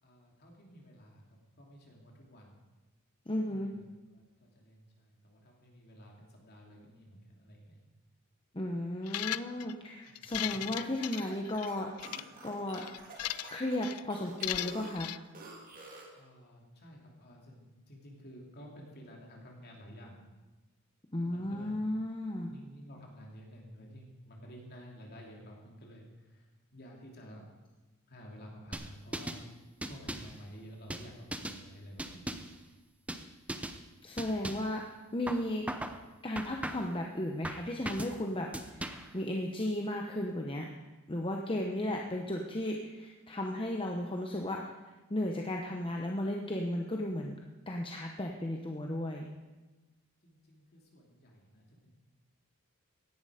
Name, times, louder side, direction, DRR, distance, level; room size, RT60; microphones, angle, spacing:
voice 1, 0.0-2.5 3.3-3.8 4.1-7.8 10.1-10.3 16.2-20.3 21.2-21.8 22.5-26.5 26.7-27.5 28.1-29.4 29.8-32.4 50.2-51.9, equal, 45° left, 0 dB, 2.9 m, -52 dB
voice 2, 3.3-3.7 8.5-11.9 12.4-12.8 13.5-15.1 21.1-22.5 34.0-34.8 35.1-35.6 36.2-40.7 41.1-44.7 45.1-47.4 47.7-49.3, left 1 dB, 25° left, 1 dB, 0.9 m, -35 dB
sound 1, 9.1-9.7 10.2-11.7 12.0-12.2 12.7-13.6 13.8-14.0 14.4-15.2, left 14 dB, 85° left, 0.4 m, -37 dB
sound 2, 10.3-16.2, right 2 dB, 40° right, 2.5 m, -50 dB
sound 3, 28.7-29.4 29.8-30.4 30.9-31.6 32.0-32.6 33.1-33.2 33.5-33.8 34.2-34.7 35.3-36.0 36.4-37.0 37.4-38.2 38.5-39.1, right 1 dB, 5° right, 0.7 m, -39 dB
17.0 x 11.0 x 5.0 m, 1.2 s
head